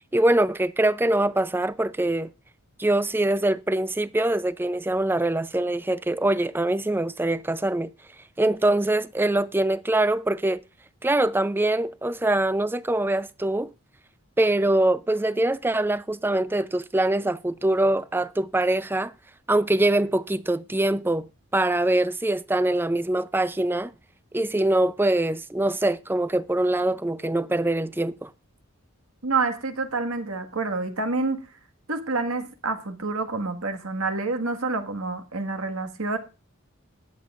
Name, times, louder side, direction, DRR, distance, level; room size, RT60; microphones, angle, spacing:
voice 1, 0.1-2.3 2.8-7.9 8.4-10.6 11.0-13.7 14.4-19.1 19.5-23.9 24.3-28.3, right 1 dB, 10° right, 0.5 m, -23 dB
voice 2, 29.2-31.5 31.9-36.2, right 3 dB, 80° right, 1.7 m, -28 dB
20.0 x 7.6 x 2.5 m
head